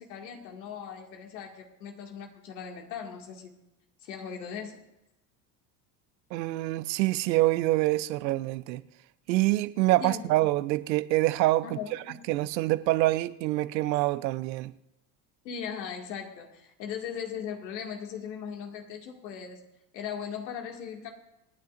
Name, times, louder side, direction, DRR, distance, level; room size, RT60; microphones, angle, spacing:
voice 1, 0.0-3.5 4.0-4.8 10.0-10.2 11.6-12.2 15.4-19.7 19.9-21.1, left 7 dB, 85° left, 2.3 m, -38 dB
voice 2, 6.3-8.8 9.3-11.8 12.3-14.7, right 18 dB, 85° right, 0.8 m, -26 dB
27.0 x 9.3 x 2.6 m
supercardioid pair, 90°, 50 cm